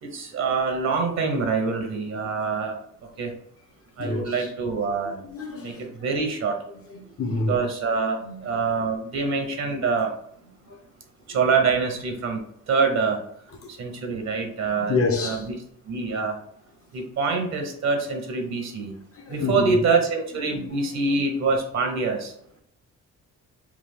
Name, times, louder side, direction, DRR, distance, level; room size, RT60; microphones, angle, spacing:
voice 1, 0.0-2.8 3.2-3.3 4.0-5.2 5.6-6.6 7.5-10.1 11.3-12.4 12.7-13.2 13.8-15.0 15.2-15.4 15.9-16.4 16.9-18.9 19.3-22.3, right 4 dB, 60° right, 0.9 m, -25 dB
voice 2, 4.0-4.5 5.2-5.8 6.9-7.6 8.2-8.4 10.7-10.8 11.3-11.4 14.8-15.5 19.1-19.8 20.5-20.6, left 3 dB, 50° left, 0.8 m, -28 dB
3.4 x 2.3 x 3.5 m
cardioid pair, 90°, 30 cm